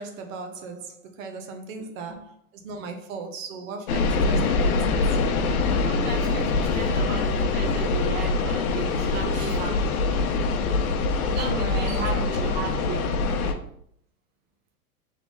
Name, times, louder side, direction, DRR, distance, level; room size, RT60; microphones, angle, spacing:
voice 1, 0.0-5.4 7.6-8.1 9.2-9.5 10.5-10.6 10.9-12.7, right 4 dB, 65° right, 0.9 m, -38 dB
voice 2, 1.8-2.2 5.7-10.3 11.1-13.1, right 5 dB, 20° right, 0.8 m, -35 dB
sound 1, 3.9-13.5, left 3 dB, 75° left, 0.9 m, -24 dB
3.7 x 3.4 x 3.7 m
hypercardioid pair, 130°, 44 cm